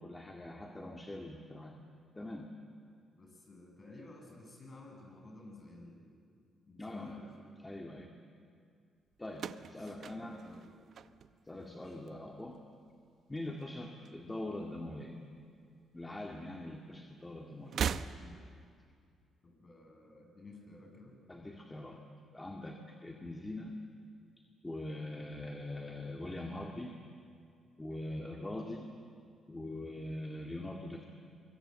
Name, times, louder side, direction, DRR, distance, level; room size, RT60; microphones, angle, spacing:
voice 1, 0.0-1.7 2.2-2.5 6.8-7.2 7.6-8.1 9.2-10.4 11.5-12.6 13.3-15.1 15.9-17.8 21.3-22.0 22.3-23.8 24.6-27.0 27.8-28.9 29.5-31.1, left 1 dB, 15° left, 1 dB, 2.1 m, -43 dB
voice 2, 3.2-6.1 6.6-7.3 9.8-10.8 11.6-11.9 18.1-18.4 19.4-21.2, left 2 dB, 35° left, 1 dB, 7.6 m, -53 dB
sound 1, 9.3-11.7 12.0-12.6 13.6-14.6 14.9-15.0 16.1-16.2 17.6-18.6, right 7 dB, 60° right, 0.7 m, -39 dB
24.5 x 23.0 x 8.1 m, 2.3 s
cardioid pair, 90°, 0 cm